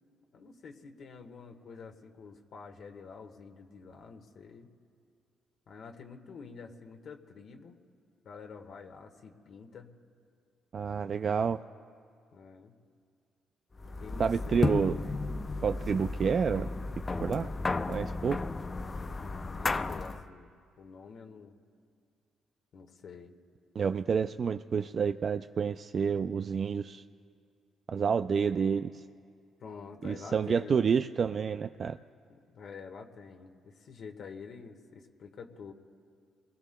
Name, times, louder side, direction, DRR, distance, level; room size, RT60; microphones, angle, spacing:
voice 1, 0.3-4.7 5.7-7.8 8.2-9.9 12.3-12.7 14.0-15.3 18.2-18.6 19.1-20.5 20.8-21.6 22.7-23.3 29.6-30.8 32.3-35.7, left 5 dB, 65° left, 3 dB, 1.4 m, -48 dB
voice 2, 10.7-11.6 14.2-15.0 15.6-16.7 17.2-17.5 17.9-18.4 23.8-27.0 27.9-29.0 30.0-32.0, right 6 dB, 50° right, 9 dB, 0.3 m, -29 dB
sound 1, 13.8-20.3, left 3 dB, 30° left, 0.5 m, -34 dB
28.0 x 21.5 x 2.2 m, 2.3 s
cardioid pair, 90°, 0 cm